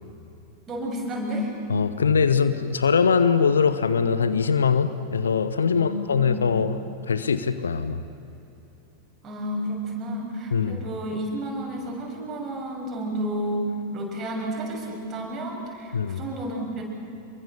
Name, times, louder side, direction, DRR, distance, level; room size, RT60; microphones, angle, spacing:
voice 1, 0.7-1.5 5.7-6.5 9.2-16.8, equal, 25° right, 0 dB, 6.7 m, -31 dB
voice 2, 1.7-6.8 7.1-8.0 10.5-10.8 15.9-16.2, left 6 dB, 70° left, 12 dB, 1.1 m, -22 dB
27.0 x 23.5 x 6.9 m, 2.9 s
figure-of-eight pair, 90°, 0 cm